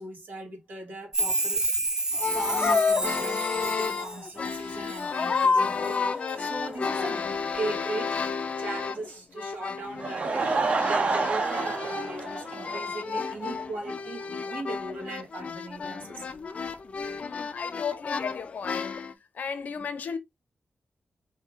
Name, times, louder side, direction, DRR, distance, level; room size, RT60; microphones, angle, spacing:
voice 1, 0.0-16.2 17.6-17.7 17.9-18.0 19.8-19.9, right 2 dB, 80° right, 2.0 m, -39 dB
Chime, 1.1-5.0 5.4-6.0 6.3-6.4, right 2 dB, 20° right, 0.4 m, -30 dB
sound 1, 2.1-9.1 9.4-19.1, left 5 dB, 45° left, 0.4 m, -31 dB
Laughter / Crowd, 9.8-13.3 13.6-13.7 14.2-14.3 14.5-14.6, right 3 dB, 45° right, 0.7 m, -28 dB
voice 2, 17.2-19.0 19.3-20.2, left 6 dB, 65° left, 0.7 m, -35 dB
4.3 x 2.8 x 3.7 m
wide cardioid pair, 170°, 3 cm